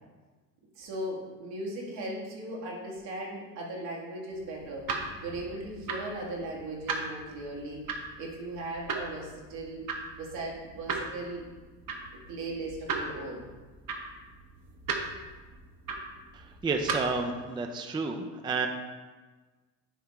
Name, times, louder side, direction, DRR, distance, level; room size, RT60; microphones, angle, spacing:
voice 1, 0.8-9.8 10.2-11.4 12.3-13.5, right 1 dB, 80° right, -3 dB, 1.8 m, -38 dB
sound 1, 4.3-17.3, right 4 dB, 50° right, 1.0 m, -38 dB
voice 2, 16.3-18.7, right 4 dB, 10° right, 5 dB, 0.4 m, -31 dB
9.3 x 3.5 x 3.2 m, 1.3 s
supercardioid pair, 85°, 44 cm